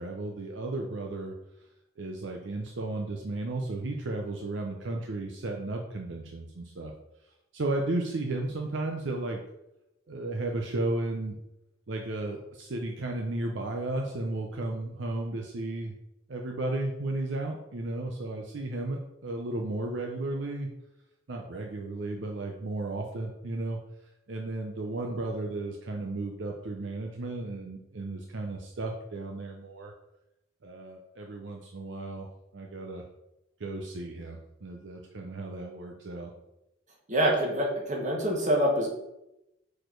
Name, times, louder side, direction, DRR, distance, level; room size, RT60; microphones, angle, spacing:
voice 1, 0.0-1.3 2.0-6.9 7.5-9.4 10.1-11.4 11.9-15.9 16.3-20.7 21.3-23.8 24.3-29.9 30.6-32.3 32.5-33.0 33.6-36.3, right 2 dB, 60° right, 1 dB, 0.6 m, -34 dB
voice 2, 37.1-38.9, equal, 35° right, -1 dB, 1.3 m, -25 dB
4.8 x 4.3 x 4.5 m, 0.89 s
head